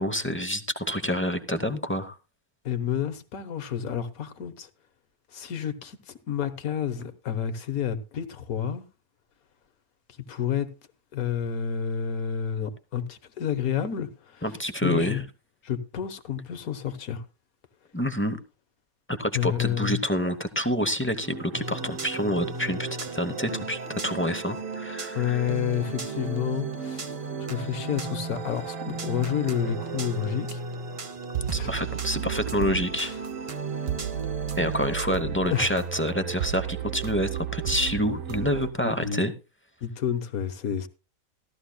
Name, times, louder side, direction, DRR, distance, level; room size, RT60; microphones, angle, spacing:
voice 1, 0.0-2.2 14.4-15.2 17.9-18.4 19.1-25.4 31.5-33.1 34.6-39.3, equal, 10° left, 0.6 m, -28 dB
voice 2, 2.6-4.7 5.3-8.9 10.3-10.7 11.1-14.4 14.8-15.2 15.6-17.2 19.3-20.0 25.1-27.1 27.4-30.6 31.5-31.7 33.0-33.2 35.5-35.7 38.8-39.3 39.8-40.9, left 9 dB, 80° left, 1.6 m, -30 dB
sound 1, 21.2-38.7, right 9 dB, 65° right, 1.2 m, -35 dB
sound 2, 21.5-35.0, right 3 dB, 35° right, 0.6 m, -36 dB
16.5 x 13.0 x 2.2 m
omnidirectional pair, 1.5 m